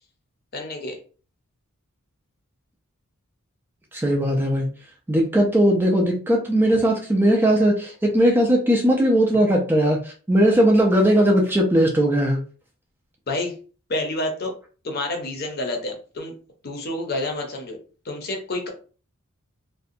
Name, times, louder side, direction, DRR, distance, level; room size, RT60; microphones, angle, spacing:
voice 1, 0.5-1.0 13.3-13.5 13.9-14.5 14.8-16.3 16.6-17.8 18.0-18.7, left 2 dB, 45° left, 3 dB, 0.6 m, -28 dB
voice 2, 3.9-4.7 5.1-12.4, equal, 10° right, 0 dB, 0.3 m, -19 dB
2.5 x 2.2 x 2.6 m, 0.38 s
head